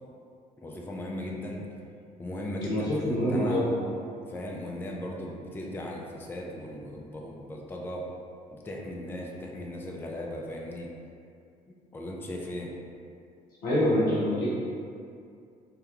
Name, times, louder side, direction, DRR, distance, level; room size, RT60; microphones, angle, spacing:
voice 1, 0.6-1.6 2.2-3.7 4.3-8.1 8.5-10.9 11.7-12.7, left 1 dB, 10° left, -1 dB, 0.3 m, -37 dB
voice 2, 2.6-3.8 13.6-14.5, equal, 70° left, -8 dB, 0.7 m, -25 dB
2.2 x 2.1 x 2.8 m, 2.4 s
figure-of-eight pair, 50°, 21 cm